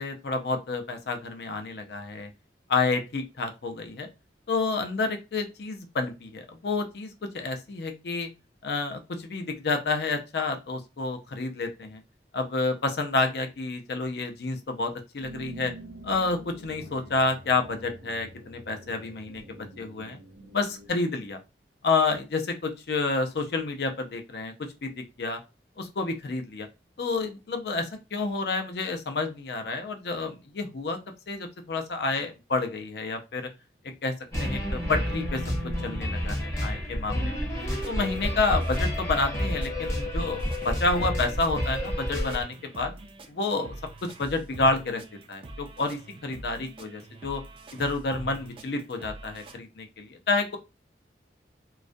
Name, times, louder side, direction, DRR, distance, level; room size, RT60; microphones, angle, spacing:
voice 1, 0.0-2.3 2.7-4.1 4.5-8.3 8.6-12.0 12.3-15.7 16.0-20.2 20.5-21.4 21.8-25.4 25.8-26.7 27.0-31.0 31.3-33.5 34.0-34.1 34.4-35.4 35.8-37.5 37.9-42.9 43.3-43.7 44.0-45.0 45.3-47.4 47.7-50.6, left 3 dB, 65° left, 5 dB, 0.5 m, -29 dB
sound 1, 15.2-20.9, right 1 dB, 90° right, 0.5 m, -46 dB
sound 2, 34.3-42.4, equal, 15° left, 0.7 m, -29 dB
sound 3, 37.6-49.6, right 2 dB, 30° right, 0.3 m, -45 dB
2.3 x 2.1 x 2.5 m, 0.27 s
head